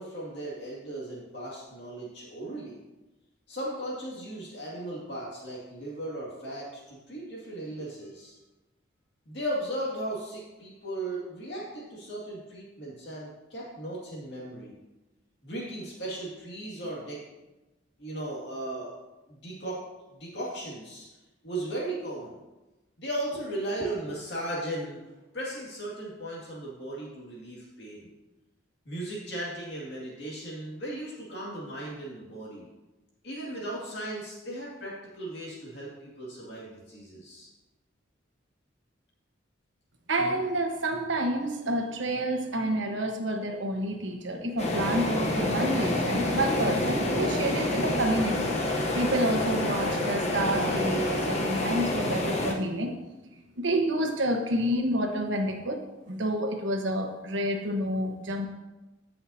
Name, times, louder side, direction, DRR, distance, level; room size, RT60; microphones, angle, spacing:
voice 1, 0.0-2.8 3.5-8.4 9.3-14.8 15.4-17.2 18.0-18.9 19.3-19.8 20.1-21.1 21.4-22.4 23.0-25.0 25.3-28.1 28.9-32.7 33.2-37.5, right 1 dB, 55° left, -5 dB, 2.3 m, -36 dB
voice 2, 40.1-48.5 48.9-53.0 53.6-55.8 56.1-58.5, right 1 dB, 70° right, 3 dB, 1.2 m, -29 dB
sound 1, 44.6-52.5, left 1 dB, 35° left, 1.0 m, -28 dB
16.0 x 5.9 x 2.8 m, 1.1 s
head